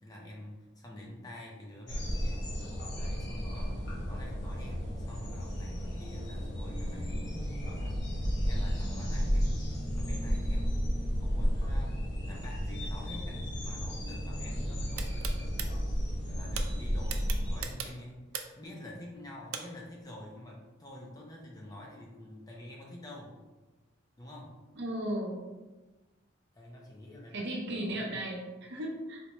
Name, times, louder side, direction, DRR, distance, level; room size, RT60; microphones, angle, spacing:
voice 1, 0.0-2.4 2.9-7.3 7.6-8.0 8.4-10.8 11.2-15.9 16.3-18.3 18.5-23.4 24.2-24.5 26.5-27.5 27.8-28.3, left 1 dB, 20° left, -2 dB, 0.5 m, -47 dB
sound 1, 1.9-17.7, equal, 55° left, 0.8 m, -33 dB
sound 2, 15.0-15.7 16.6-16.7 17.1-18.7 19.5-19.6, right 8 dB, 90° right, 0.4 m, -37 dB
voice 2, 24.8-25.4 27.3-29.2, right 1 dB, 55° right, -1 dB, 0.7 m, -35 dB
4.2 x 2.2 x 2.9 m, 1.2 s
head